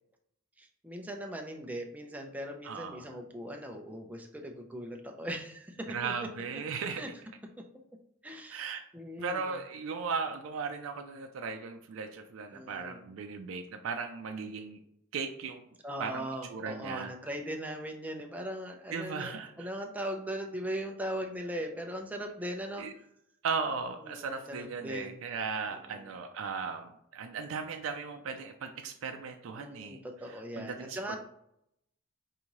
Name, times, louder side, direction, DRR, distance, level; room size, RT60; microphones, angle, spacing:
voice 1, 0.6-6.1 6.5-6.6 6.9-7.1 8.2-8.6 8.9-9.6 12.5-13.0 15.8-22.9 24.0-25.2 25.7-26.2 29.5-31.2, equal, 10° right, 2 dB, 0.5 m, -39 dB
voice 2, 2.6-3.1 5.9-7.0 8.5-8.8 9.2-14.8 15.1-15.6 16.0-17.1 18.9-19.7 22.8-22.9 23.4-30.0 30.6-31.2, right 5 dB, 80° right, 5 dB, 0.4 m, -37 dB
4.9 x 2.7 x 3.0 m, 0.77 s
head